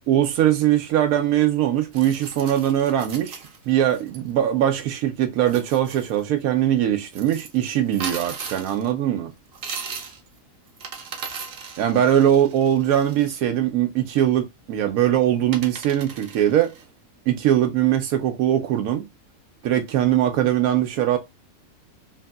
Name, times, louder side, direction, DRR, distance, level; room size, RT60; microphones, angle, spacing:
voice 1, 0.1-3.4 3.7-9.3 11.8-16.7 17.3-19.0 19.6-21.2, right 11 dB, 90° right, 1.0 m, -21 dB
sound 1, 1.9-4.2 5.4-6.2 7.1-8.9 9.5-10.3 10.7-13.4 14.9-15.0 15.5-16.8, right 5 dB, 55° right, 0.7 m, -37 dB
3.2 x 2.6 x 2.2 m
omnidirectional pair, 1.5 m